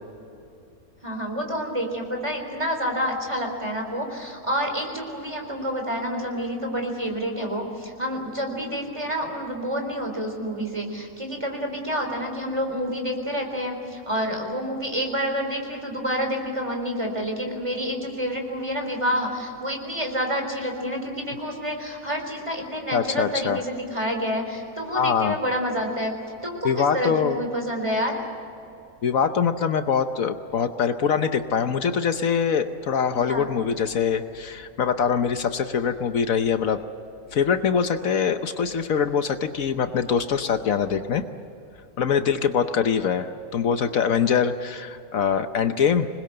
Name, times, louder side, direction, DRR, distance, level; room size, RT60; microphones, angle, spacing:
voice 1, 1.0-26.1 26.4-28.2 33.3-33.5, equal, 20° right, 3 dB, 4.1 m, -28 dB
voice 2, 22.9-23.6 24.9-25.4 26.6-27.4 29.0-36.8 37.3-41.2 42.0-46.1, left 7 dB, 70° left, 8 dB, 1.3 m, -23 dB
26.5 x 20.5 x 7.8 m, 2.7 s
omnidirectional pair, 1.5 m